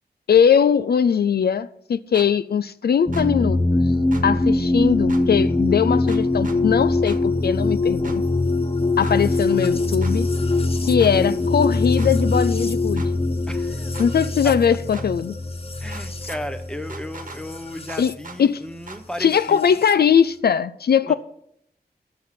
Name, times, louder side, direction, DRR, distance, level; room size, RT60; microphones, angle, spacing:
voice 1, 0.3-3.9 4.2-8.2 9.0-10.3 10.8-13.0 14.0-15.4 18.0-18.7 19.2-21.1, left 7 dB, 70° left, 0.4 m, -20 dB
sound 1, 2.1-2.3 3.1-3.3 4.1-4.2 5.1-5.2 6.1-6.6 7.1-7.2 8.0-8.2 9.0-9.2 10.0-10.1 11.0-11.1 12.0-12.1 13.0-13.1 13.9-14.1 14.9-15.1 15.9-16.4 16.9-17.4 17.9-18.4 18.9-19.0, right 4 dB, 55° right, 1.2 m, -39 dB
sound 2, 3.1-18.1 19.3-19.9, left 2 dB, 35° left, 0.8 m, -22 dB
voice 2, 13.5-13.9 14.4-14.5 15.8-19.6 21.0-21.1, equal, 5° left, 1.1 m, -34 dB
11.5 x 7.5 x 5.9 m
wide cardioid pair, 105°, 17 cm